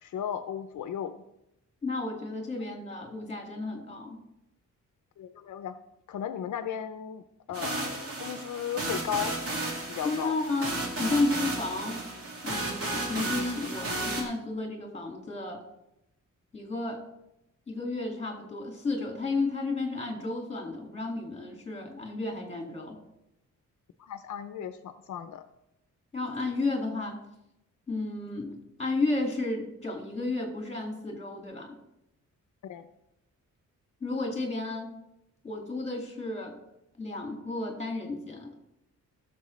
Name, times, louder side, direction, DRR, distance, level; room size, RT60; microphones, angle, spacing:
voice 1, 0.0-1.2 5.2-5.7 6.1-7.2 7.5-9.3 9.9-10.4 24.0-25.4 32.6-32.9, left 9 dB, 70° left, 10 dB, 0.6 m, -35 dB
voice 2, 1.8-4.2 10.0-12.0 12.4-15.6 16.5-17.0 17.7-23.0 26.1-27.2 27.9-31.8 34.0-34.9 35.4-36.6 37.0-38.5, left 2 dB, 20° left, 2 dB, 2.0 m, -32 dB
sound 1, 7.5-14.2, right 2 dB, 45° right, 2.2 m, -33 dB
17.0 x 6.8 x 3.1 m, 0.87 s
wide cardioid pair, 160°, 32 cm